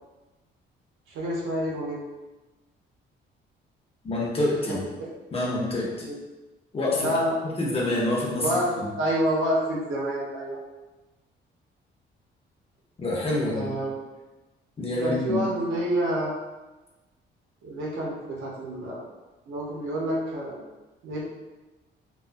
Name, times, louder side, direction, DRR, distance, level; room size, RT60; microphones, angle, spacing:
voice 1, 1.1-2.0 4.7-4.8 5.9-6.2 7.0-7.4 8.4-10.6 13.5-13.9 15.0-16.4 17.6-19.0 19.5-20.6 21.0-21.2, equal, 85° right, -4 dB, 0.7 m, -28 dB
voice 2, 4.0-4.8 5.3-5.9 6.7-7.1 7.6-8.5 8.8-8.9 13.0-13.7 14.8-15.4, left 1 dB, 30° left, -3 dB, 0.7 m, -26 dB
2.3 x 2.3 x 2.5 m, 1.1 s
cardioid pair, 90°, 20 cm